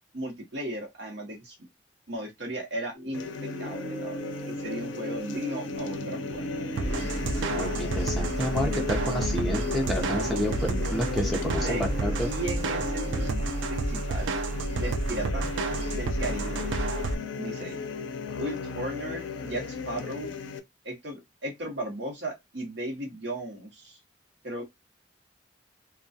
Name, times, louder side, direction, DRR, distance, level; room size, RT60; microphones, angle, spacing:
voice 1, 0.1-1.6 2.1-4.2 4.5-6.4 11.3-11.8 12.2-14.4 14.7-15.4 15.9-16.8 17.4-17.8 18.4-20.3 20.8-24.0 24.4-24.6, right 1 dB, 70° right, 0.9 m, -36 dB
sound 1, 2.9-13.3, right 1 dB, 45° right, 1.1 m, -40 dB
sound 2, 3.1-20.6, left 4 dB, 85° left, 0.4 m, -36 dB
sound 3, 6.8-17.2, right 2 dB, 90° right, 0.4 m, -30 dB
voice 2, 7.5-12.3, equal, ahead, 0.6 m, -30 dB
2.2 x 2.2 x 2.6 m
head